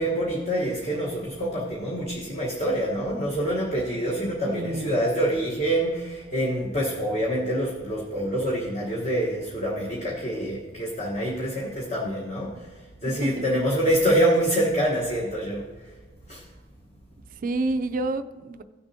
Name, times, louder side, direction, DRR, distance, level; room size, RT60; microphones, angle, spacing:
voice 1, 0.0-12.7 13.0-15.7 16.3-16.4, right 1 dB, 35° left, -4 dB, 1.2 m, -26 dB
voice 2, 4.4-5.0 13.0-13.4 17.4-18.6, right 2 dB, 45° right, 11 dB, 0.4 m, -28 dB
15.5 x 6.9 x 2.7 m, 1.3 s
head